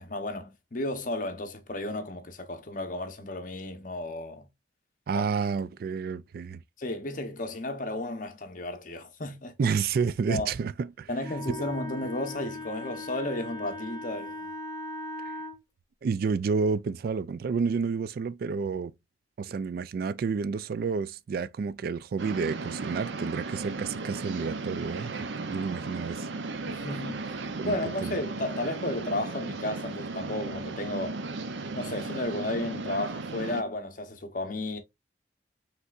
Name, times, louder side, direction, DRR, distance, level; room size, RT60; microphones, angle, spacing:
voice 1, 0.0-4.5 5.1-5.3 6.8-9.5 10.3-10.5 11.1-14.5 26.7-27.4 27.6-31.2 31.7-34.8, left 1 dB, 50° left, 0.9 m, -33 dB
voice 2, 5.1-6.6 9.6-11.1 16.0-18.9 19.4-26.3 27.6-28.2, right 5 dB, 55° right, 0.3 m, -30 dB
Wind instrument woodwind instrument, 11.2-15.6, left 1 dB, 20° left, 1.1 m, -39 dB
sound 1, 22.2-33.6, right 3 dB, 90° right, 0.6 m, -36 dB
5.4 x 3.4 x 2.4 m
head